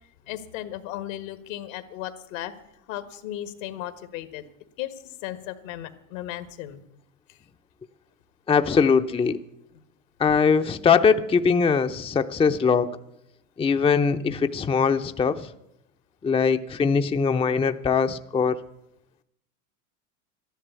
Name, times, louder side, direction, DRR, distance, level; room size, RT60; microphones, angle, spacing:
voice 1, 0.3-2.5 2.9-4.4 4.8-4.9 5.2-6.8, left 13 dB, 75° left, 12 dB, 1.7 m, -35 dB
voice 2, 8.5-9.4 10.2-12.9 13.6-15.5 16.2-18.6, left 5 dB, 15° left, 8 dB, 0.6 m, -21 dB
12.5 x 11.0 x 8.1 m, 0.83 s
hypercardioid pair, 100°, 40 cm